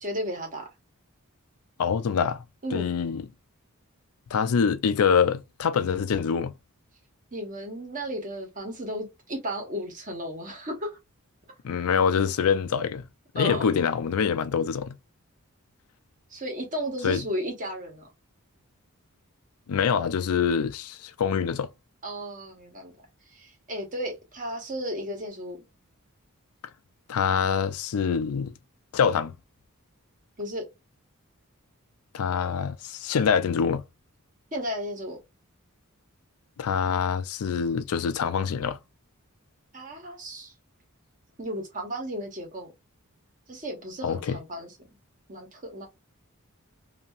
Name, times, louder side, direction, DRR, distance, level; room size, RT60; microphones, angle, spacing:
voice 1, 0.0-0.7 2.6-2.9 7.3-11.0 13.4-13.7 16.3-18.1 22.0-23.1 23.3-25.6 30.4-30.6 34.5-35.2 39.7-40.5 41.4-42.7 43.5-44.7 45.3-45.9, equal, 40° right, 1.2 m, -34 dB
voice 2, 1.8-2.4 2.7-3.3 4.3-6.5 11.6-13.1 13.3-15.0 17.0-17.2 19.7-21.7 27.1-28.5 28.9-29.4 32.1-33.8 36.6-38.8 44.0-44.4, left 6 dB, 75° left, 0.4 m, -25 dB
2.8 x 2.7 x 2.4 m
head